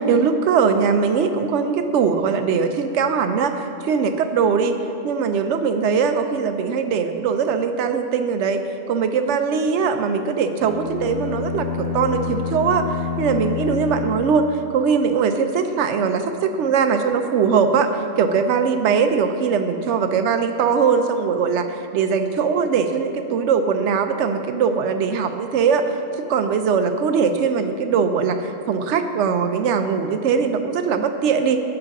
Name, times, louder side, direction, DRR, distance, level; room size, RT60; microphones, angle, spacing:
voice 1, 0.0-4.8 5.0-8.6 8.9-12.8 13.2-14.5 14.7-17.9 18.2-26.0 26.3-31.6, right 6 dB, 70° right, 8 dB, 0.8 m, -21 dB
sound 1, 10.6-15.0, left 6 dB, 40° left, 0.6 m, -28 dB
8.4 x 5.1 x 5.8 m, 2.7 s
omnidirectional pair, 1.3 m